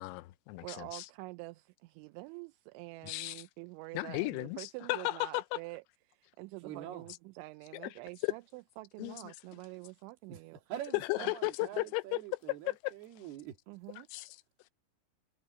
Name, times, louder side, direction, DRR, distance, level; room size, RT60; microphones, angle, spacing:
voice 1, 0.0-1.1 3.0-3.4 3.9-5.6 7.7-7.9 8.2-8.3 9.0-9.3 11.1-12.2 12.8-12.9 14.1-14.4, left 22 dB, 90° left, 3.4 m, -35 dB
voice 2, 0.6-10.6 11.2-11.3 13.7-14.1, right 22 dB, 85° right, 2.7 m, -47 dB
voice 3, 6.6-7.1 10.3-10.4 10.7-13.6, right 11 dB, 60° right, 3.6 m, -44 dB
omnidirectional pair, 5.8 m